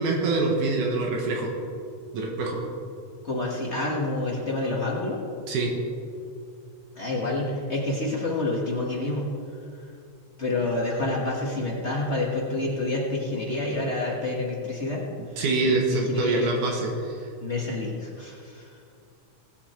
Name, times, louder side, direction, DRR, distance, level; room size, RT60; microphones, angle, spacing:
voice 1, 0.0-1.5 2.1-2.6 5.5-5.7 15.4-17.1, right 3 dB, 80° right, 0 dB, 2.9 m, -25 dB
voice 2, 3.2-5.2 6.9-9.3 10.4-15.0 15.6-16.5 17.4-18.7, left 2 dB, 40° left, -3 dB, 1.0 m, -28 dB
18.0 x 8.5 x 4.4 m, 2.4 s
omnidirectional pair, 3.5 m